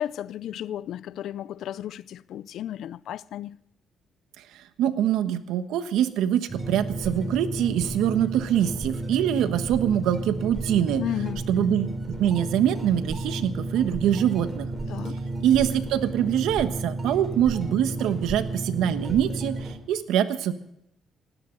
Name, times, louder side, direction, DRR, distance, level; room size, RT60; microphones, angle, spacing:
voice 1, 0.0-3.6 11.0-11.5 14.9-15.2, left 11 dB, 75° left, 0.5 m, -33 dB
voice 2, 4.8-11.0 11.5-14.7 15.4-20.5, right 10 dB, 90° right, 1.2 m, -24 dB
sound 1, 6.5-19.8, right 2 dB, 30° right, 3.9 m, -32 dB
19.0 x 17.0 x 3.9 m
cardioid pair, 90°, 0 cm